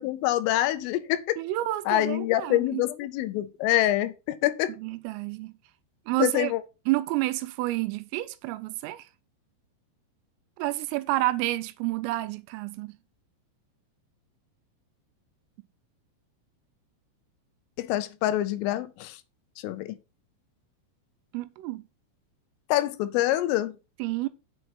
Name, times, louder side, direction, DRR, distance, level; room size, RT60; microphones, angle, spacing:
voice 1, 0.0-1.4 1.9-4.7 6.2-6.6 17.8-19.2 19.6-20.0 22.7-23.8, left 14 dB, 80° left, 3.3 m, -26 dB
voice 2, 1.4-2.8 4.8-5.5 6.1-6.5 6.9-9.1 10.6-12.9 21.3-21.8 24.0-24.3, right 17 dB, 85° right, 3.2 m, -29 dB
8.0 x 6.1 x 5.9 m
omnidirectional pair, 6.0 m